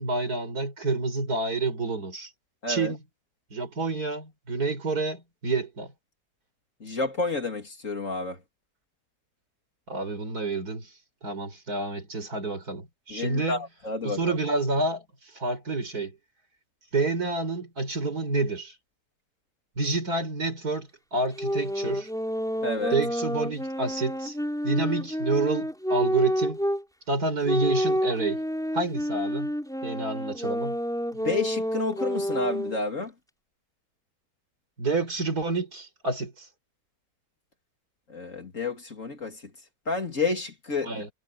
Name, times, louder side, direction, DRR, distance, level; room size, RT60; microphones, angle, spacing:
voice 1, 0.0-2.3 2.7-3.0 3.5-5.9 9.9-10.9 11.2-13.6 14.0-15.0 15.3-16.2 16.9-18.7 19.8-22.1 22.9-24.4 24.6-26.6 27.1-28.4 28.7-29.5 29.8-30.8 34.8-36.5 40.8-41.1, right 3 dB, 60° right, 5.3 m, -29 dB
voice 2, 6.8-8.4 13.1-14.4 22.6-22.9 31.1-33.1 38.1-39.4 39.9-41.0, left 3 dB, 45° left, 3.1 m, -30 dB
sound 1, 21.3-26.8 27.4-32.8, equal, ahead, 4.5 m, -29 dB
omnidirectional pair, 1.9 m